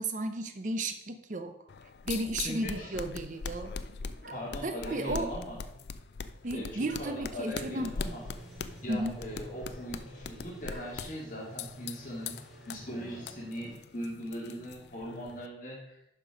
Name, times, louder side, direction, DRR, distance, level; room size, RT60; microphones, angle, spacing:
voice 1, 0.0-1.6 2.1-3.7 4.6-5.4 6.4-8.0 8.9-9.2, right 1 dB, 45° right, 8 dB, 0.7 m, -34 dB
sound 1, 1.7-15.5, left 5 dB, 70° left, 0.4 m, -42 dB
voice 2, 2.4-2.9 4.3-5.6 6.5-8.2 8.8-12.4 12.7-16.0, equal, 45° left, -4 dB, 2.4 m, -40 dB
sound 2, 2.7-3.2 4.2-5.4 6.9-7.3 8.2-8.3 8.5-11.1, right 2 dB, 65° right, 2.1 m, -52 dB
sound 3, 7.6-13.8, right 1 dB, ahead, 1.4 m, -49 dB
11.0 x 4.6 x 5.1 m, 0.82 s
head